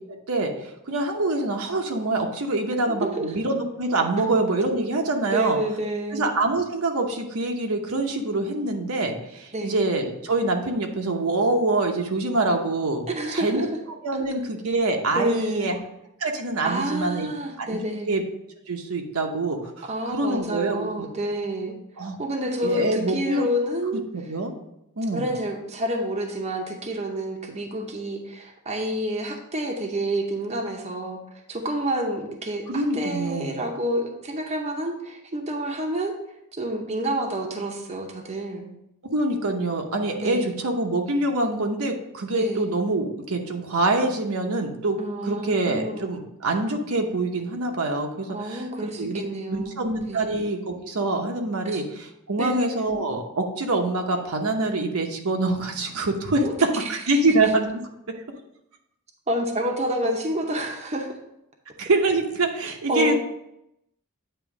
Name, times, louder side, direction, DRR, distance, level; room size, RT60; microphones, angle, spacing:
voice 1, 0.1-5.6 6.1-13.7 14.0-15.8 16.2-17.3 17.6-17.8 18.1-18.2 18.7-21.1 22.0-22.2 22.6-23.5 24.1-24.5 25.0-25.3 32.7-33.6 39.0-45.0 45.2-49.2 49.5-57.7 61.8-63.1, right 2 dB, 70° right, 3 dB, 0.8 m, -25 dB
voice 2, 2.9-3.3 5.3-6.3 9.5-9.8 13.1-13.6 15.1-15.7 16.6-18.1 19.9-21.7 22.0-24.0 25.1-31.2 31.5-36.1 36.5-38.7 40.2-40.5 42.3-42.7 45.0-46.1 48.3-49.8 50.1-50.2 51.6-51.8 52.4-52.6 56.4-56.5 56.8-56.9 59.3-61.1 62.9-63.1, right 1 dB, 30° right, 2 dB, 0.7 m, -28 dB
9.0 x 3.0 x 4.7 m, 0.83 s
head